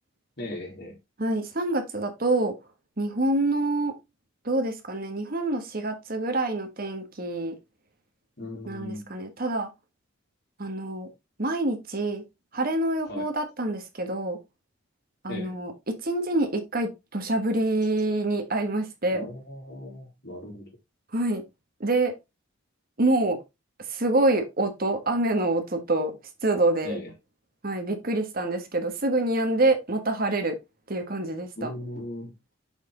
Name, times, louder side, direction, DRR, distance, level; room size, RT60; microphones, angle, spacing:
voice 1, 0.4-1.0 8.4-9.1 13.1-13.3 15.3-15.5 19.1-20.7 26.8-27.1 31.6-32.3, left 1 dB, 55° left, 4.1 m, -37 dB
voice 2, 1.2-2.5 3.0-3.9 4.4-7.5 8.7-9.7 10.6-11.1 11.4-12.2 12.5-14.4 15.2-19.3 21.1-21.4 21.8-22.1 23.0-23.4 23.9-26.1 26.4-27.0 27.6-30.6 30.9-31.7, right 2 dB, 45° right, 1.5 m, -26 dB
6.6 x 6.2 x 3.8 m
head